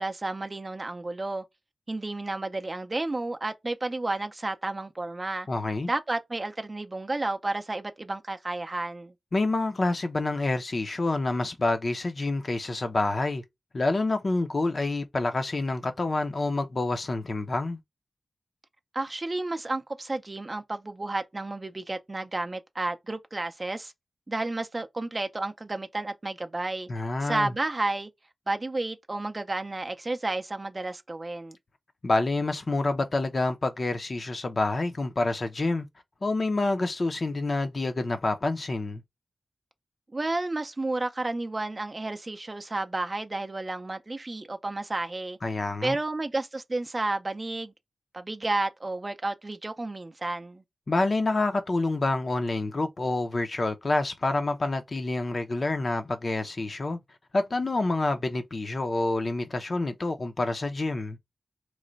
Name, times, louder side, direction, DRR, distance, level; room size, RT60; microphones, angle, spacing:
voice 1, 0.0-1.4 1.9-5.5 5.9-9.1 18.9-23.9 24.3-26.9 27.2-28.1 28.5-31.6 40.1-45.4 45.8-47.7 48.1-50.6, right 2 dB, 30° right, 0.4 m, -31 dB
voice 2, 5.5-5.9 9.3-13.4 13.7-17.8 26.9-27.5 32.0-35.9 36.2-39.0 45.4-46.0 50.9-57.0 57.3-61.2, left 2 dB, 45° left, 0.6 m, -27 dB
3.1 x 2.1 x 3.8 m
wide cardioid pair, 90°, 0 cm